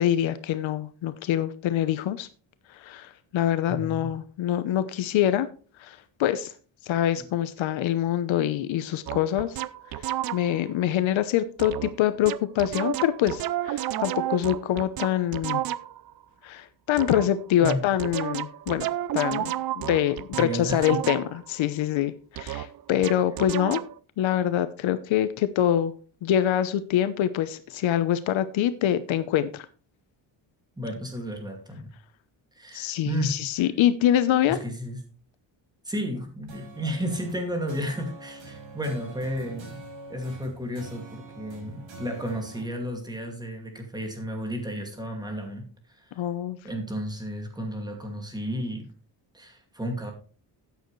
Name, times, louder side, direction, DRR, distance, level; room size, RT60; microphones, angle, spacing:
voice 1, 0.0-2.3 2.7-5.5 5.8-6.5 6.8-9.6 9.9-10.0 10.3-15.6 16.4-18.9 19.1-23.8 24.2-25.9 26.2-29.7 32.7-34.6 46.2-46.6, left 11 dB, 80° left, 12 dB, 0.9 m, -25 dB
voice 2, 3.7-4.1 7.2-7.3 17.6-17.8 20.4-20.9 30.8-31.9 32.5-33.4 34.5-35.0 35.8-39.8 40.1-46.2 46.6-48.9 49.3-50.1, equal, 10° right, 3 dB, 2.2 m, -32 dB
sound 1, 9.1-10.7 11.6-11.9 12.2-16.1 17.0-21.5 22.4-24.0, right 13 dB, 50° right, 0.5 m, -31 dB
sound 2, 36.5-42.6, right 3 dB, 75° right, 5.7 m, -45 dB
13.0 x 9.2 x 3.2 m, 0.38 s
cardioid pair, 180°, 46 cm